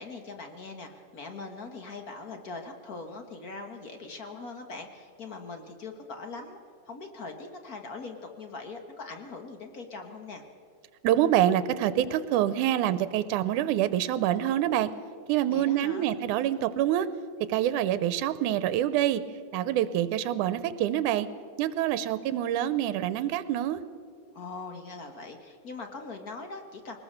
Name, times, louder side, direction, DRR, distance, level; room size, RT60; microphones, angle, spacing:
voice 1, 0.0-6.6 6.9-10.4 15.5-16.1 24.3-27.0, left 3 dB, 45° left, 5 dB, 1.2 m, -41 dB
voice 2, 11.0-14.9 15.3-17.1 17.5-19.2 19.5-21.3 21.6-23.8, right 12 dB, 90° right, 13 dB, 2.2 m, -26 dB
21.5 x 19.5 x 6.6 m, 2.1 s
omnidirectional pair, 3.5 m